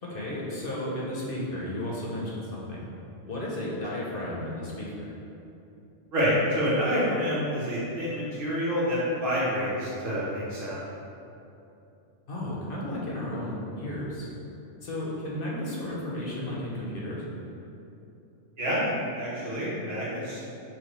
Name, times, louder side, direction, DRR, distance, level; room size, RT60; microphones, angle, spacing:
voice 1, 0.0-2.8 3.3-5.1 12.3-14.3 14.8-17.2, left 1 dB, 55° left, -5 dB, 0.8 m, -33 dB
voice 2, 6.1-10.8 18.6-20.4, equal, 85° right, -8 dB, 1.5 m, -28 dB
6.0 x 2.3 x 3.1 m, 2.8 s
omnidirectional pair, 1.3 m